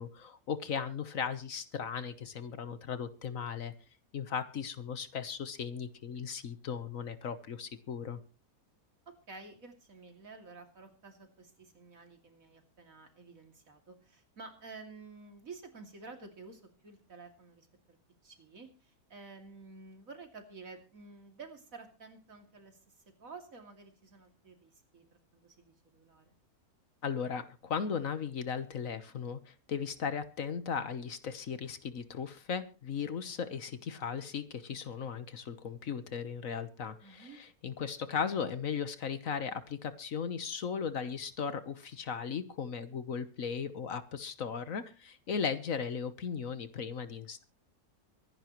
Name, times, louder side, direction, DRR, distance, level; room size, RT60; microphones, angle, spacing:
voice 1, 0.0-3.7 4.1-8.2 27.0-47.4, left 6 dB, 60° left, 12 dB, 1.4 m, -37 dB
voice 2, 9.3-18.0 18.2-22.9 23.2-26.4 37.0-37.4, right 4 dB, 60° right, 5 dB, 3.0 m, -51 dB
24.5 x 11.0 x 3.1 m, 0.33 s
omnidirectional pair, 1.6 m